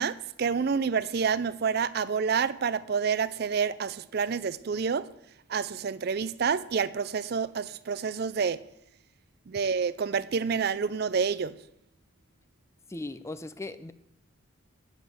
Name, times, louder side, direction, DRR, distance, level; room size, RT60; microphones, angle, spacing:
voice 1, 0.0-5.1 5.5-8.6 9.5-11.5, right 6 dB, 50° right, 0.4 m, -28 dB
voice 2, 12.9-13.9, left 2 dB, 15° left, 0.4 m, -38 dB
10.0 x 7.2 x 6.3 m
head